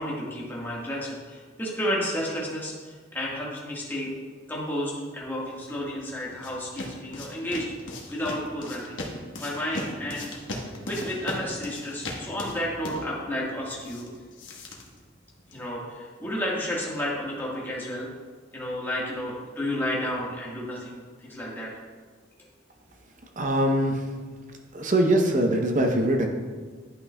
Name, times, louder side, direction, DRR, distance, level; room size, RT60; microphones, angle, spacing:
voice 1, 0.0-4.1 4.5-7.7 8.1-9.0 9.4-10.3 10.8-14.1 15.5-18.1 18.5-21.7, left 1 dB, 10° left, -5 dB, 1.4 m, -31 dB
sound 1, 5.7-15.7, left 1 dB, 70° left, 1.1 m, -38 dB
voice 2, 23.4-24.0 24.7-26.3, right 1 dB, 40° right, 3 dB, 0.7 m, -22 dB
11.0 x 5.8 x 2.2 m, 1.5 s
head